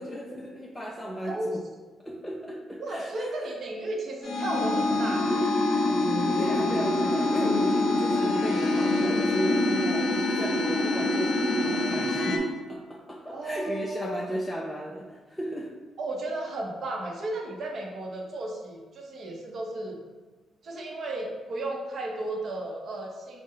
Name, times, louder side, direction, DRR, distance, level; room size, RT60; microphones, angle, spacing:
voice 1, 0.0-1.6 2.0-3.5 6.4-15.7, equal, 5° left, -3 dB, 0.4 m, -35 dB
voice 2, 1.3-1.6 2.8-5.5 13.3-14.2 16.0-20.0 20.6-23.4, right 2 dB, 55° right, 0 dB, 0.7 m, -34 dB
sound 1, 4.2-12.4, left 2 dB, 50° left, 0.7 m, -25 dB
4.2 x 2.1 x 3.7 m, 1.3 s
cardioid pair, 90°, 0 cm